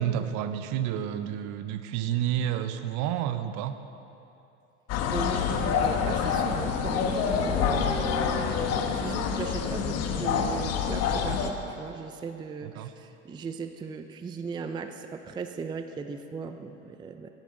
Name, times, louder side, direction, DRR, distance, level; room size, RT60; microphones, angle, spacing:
voice 1, 0.0-3.7 12.6-12.9, right 10 dB, 55° right, 10 dB, 0.8 m, -30 dB
sound 1, 4.9-11.5, left 7 dB, 45° left, 1.0 m, -27 dB
voice 2, 5.1-17.3, right 5 dB, 15° right, 8 dB, 0.4 m, -37 dB
16.0 x 9.2 x 3.8 m, 2.8 s
hypercardioid pair, 95°, 36 cm